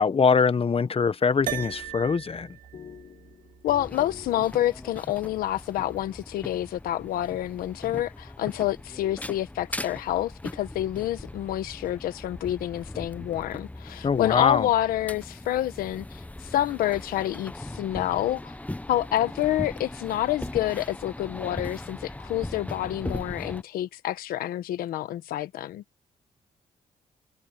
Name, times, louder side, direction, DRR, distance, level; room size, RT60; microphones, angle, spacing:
voice 1, 0.0-2.5 14.0-14.7, left 5 dB, 40° left, 1.2 m, -23 dB
sound 1, 0.9-5.2, left 7 dB, 55° left, 2.3 m, -48 dB
sound 2, 1.5-6.0, right 11 dB, 65° right, 2.3 m, -40 dB
voice 2, 3.6-18.5 18.9-25.8, left 13 dB, 90° left, 1.2 m, -28 dB
sound 3, 3.7-23.6, left 1 dB, 10° left, 1.0 m, -39 dB
supercardioid pair, 60°, 15 cm